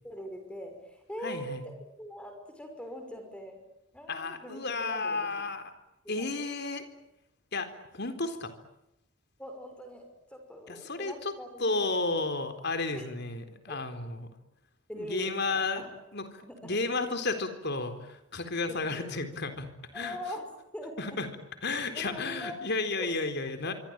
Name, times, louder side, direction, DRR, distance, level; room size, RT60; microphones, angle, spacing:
voice 1, 0.0-3.6 3.9-5.3 6.0-6.3 9.4-12.0 12.9-13.1 13.7-13.8 14.9-15.9 16.4-16.8 18.7-19.2 19.9-21.0 21.9-22.6 23.0-23.2, equal, 5° left, 5 dB, 5.7 m, -42 dB
voice 2, 1.2-1.6 4.1-5.7 6.1-6.8 7.5-8.5 10.7-11.3 11.6-14.3 14.9-15.8 16.1-16.3 16.6-19.7 19.9-20.2 21.0-21.3 21.6-23.7, left 3 dB, 50° left, 9 dB, 4.0 m, -32 dB
26.0 x 25.0 x 9.0 m, 0.86 s
head